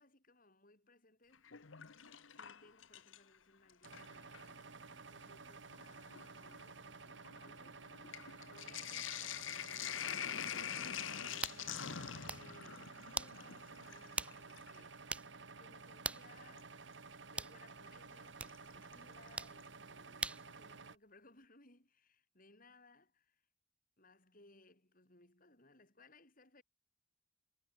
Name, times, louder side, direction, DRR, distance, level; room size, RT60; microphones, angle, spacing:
voice 1, 0.0-1.7 2.3-4.8 5.1-8.0 8.5-10.4 11.1-15.3 15.6-16.8 17.3-23.4 24.0-26.6, left 2 dB, 45° left, 7.9 m, -65 dB
Sink (filling or washing), 1.3-3.4 3.7-4.5 5.3-5.4 5.7-14.8 16.6-16.7 18.5-18.9 19.3-19.4 19.6-19.7, left 9 dB, 85° left, 1.1 m, -45 dB
sound 1, 3.8-21.0, right 4 dB, 65° right, 1.7 m, -53 dB
sound 2, 11.4-11.6 12.1-12.5 13.2-13.4 14.2-14.4 14.7-14.8 15.1-15.3 16.0-16.3 17.4-17.6 18.4-18.6 19.4-19.6 20.2-20.5, right 2 dB, 5° right, 0.4 m, -40 dB
head